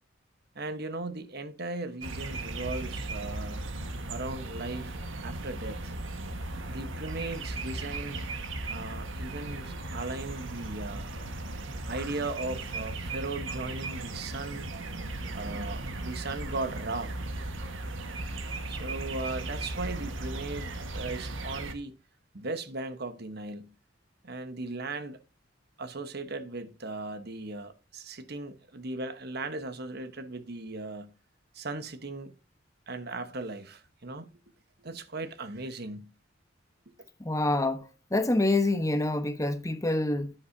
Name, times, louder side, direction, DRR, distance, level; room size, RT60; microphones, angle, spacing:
voice 1, 0.5-3.7 4.1-5.9 6.7-8.2 8.7-11.1 11.9-14.7 15.3-17.2 18.7-22.0 22.3-23.7 24.2-25.2 25.8-31.1 31.5-32.3 32.9-34.3 34.8-36.1 36.9-37.0, right 2 dB, 55° right, 1.2 m, -37 dB
sound 1, 2.0-21.7, right 2 dB, 90° right, 1.5 m, -37 dB
voice 2, 37.2-37.9 38.1-40.3, left 2 dB, 15° left, 1.0 m, -26 dB
10.5 x 10.0 x 2.7 m
head